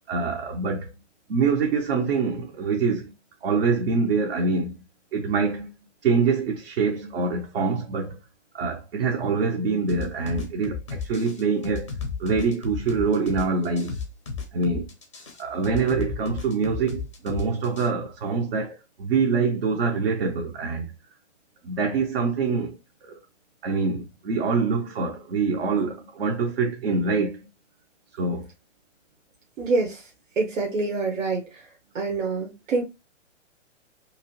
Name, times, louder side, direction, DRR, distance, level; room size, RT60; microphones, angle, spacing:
voice 1, 0.1-0.9 1.3-3.1 3.4-4.8 5.1-5.7 6.0-8.2 8.5-11.9 12.2-14.0 14.5-14.9 15.4-20.9 21.6-22.8 23.0-23.2 23.6-27.4 28.2-28.5, right 4 dB, 50° right, 0.6 m, -25 dB
sound 1, 9.9-17.9, left 5 dB, 25° left, 0.4 m, -33 dB
voice 2, 29.6-30.1 30.4-31.7 31.9-32.8, right 3 dB, 85° right, 1.0 m, -26 dB
3.0 x 2.9 x 2.9 m
hypercardioid pair, 170°, 38 cm